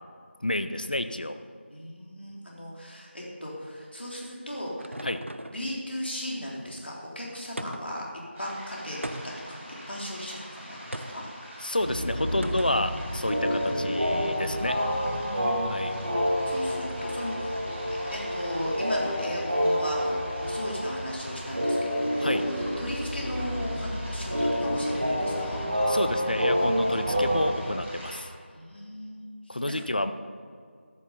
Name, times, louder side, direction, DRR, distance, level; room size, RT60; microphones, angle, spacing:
voice 1, 0.4-1.4 5.0-5.2 11.6-14.8 15.6-15.9 22.2-22.4 25.9-28.3 29.5-30.1, left 1 dB, 45° left, 10 dB, 0.6 m, -29 dB
voice 2, 1.7-5.0 5.5-8.0 8.4-9.2 9.5-11.2 15.0-16.0 16.5-17.6 18.1-25.6 28.5-29.6, equal, 60° left, -3 dB, 2.9 m, -37 dB
sound 1, 4.1-5.7 7.6-8.1 9.0-9.6 10.9-11.3 12.4-12.9, right 1 dB, 85° right, 0.7 m, -39 dB
sound 2, 8.3-28.2, equal, 5° right, 1.0 m, -44 dB
sound 3, 11.8-27.5, equal, 35° right, 2.8 m, -28 dB
13.5 x 6.9 x 5.5 m, 2.1 s
figure-of-eight pair, 170°, 6 cm